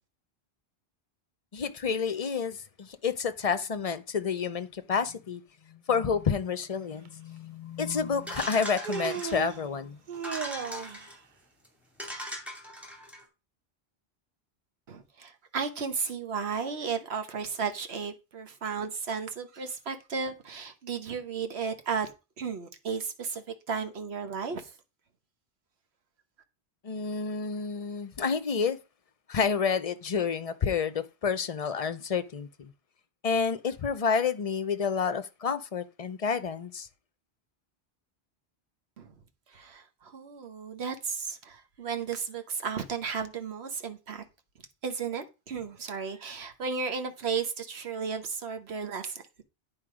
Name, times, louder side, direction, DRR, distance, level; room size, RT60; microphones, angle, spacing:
voice 1, 1.5-5.4 5.7-10.0 26.8-28.8 29.3-32.7 33.2-36.9, left 6 dB, 40° left, 0.6 m, -29 dB
Human voice, 7.0-7.1 8.4-9.6 10.1-11.1, right 7 dB, 55° right, 0.8 m, -36 dB
sound 1, 8.3-9.6 10.1-11.2 11.6-11.7 12.0-13.2, equal, ahead, 2.5 m, -39 dB
voice 2, 14.9-24.7 39.0-39.2 39.5-44.2 44.8-49.4, right 5 dB, 75° right, 1.4 m, -34 dB
9.5 x 4.6 x 4.9 m
omnidirectional pair, 1.1 m